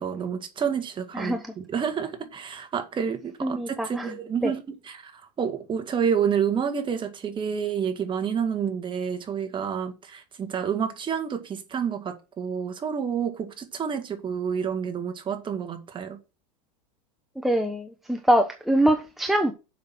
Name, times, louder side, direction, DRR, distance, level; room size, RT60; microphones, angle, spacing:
voice 1, 0.0-16.2, right 7 dB, 25° right, 1.8 m, -29 dB
voice 2, 3.4-4.1 4.4-4.5 17.4-19.5, right 1 dB, ahead, 0.9 m, -23 dB
7.3 x 6.0 x 6.0 m
supercardioid pair, 115°, 20 cm